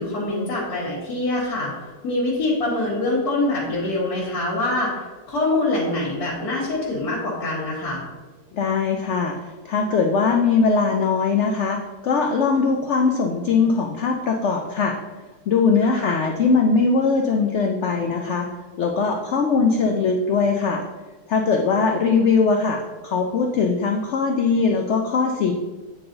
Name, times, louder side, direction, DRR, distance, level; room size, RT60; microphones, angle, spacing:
voice 1, 0.0-1.7 2.0-4.9 5.3-8.0 15.8-16.2, left 2 dB, 60° left, -8 dB, 1.9 m, -24 dB
voice 2, 8.5-9.4 9.6-15.0 15.5-18.5 18.8-20.8 21.3-25.5, left 4 dB, 85° left, 3 dB, 0.6 m, -20 dB
9.3 x 3.9 x 3.8 m, 1.3 s
omnidirectional pair, 1.9 m